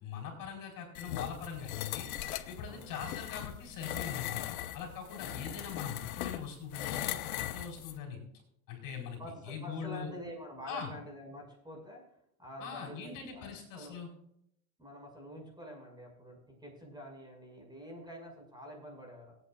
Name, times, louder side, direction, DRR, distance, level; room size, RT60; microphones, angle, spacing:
voice 1, 0.0-2.1 2.5-4.4 4.7-8.2 8.7-10.1 10.6-10.9 12.6-14.1, left 7 dB, 50° left, 1 dB, 4.6 m, -42 dB
sound 1, 0.9-8.0, left 13 dB, 80° left, 1.0 m, -39 dB
voice 2, 2.7-3.0 5.2-5.4 9.2-12.0 12.4-14.0 14.8-19.3, equal, 10° right, 1 dB, 5.7 m, -47 dB
24.5 x 9.0 x 2.5 m, 0.72 s
supercardioid pair, 105°, 42 cm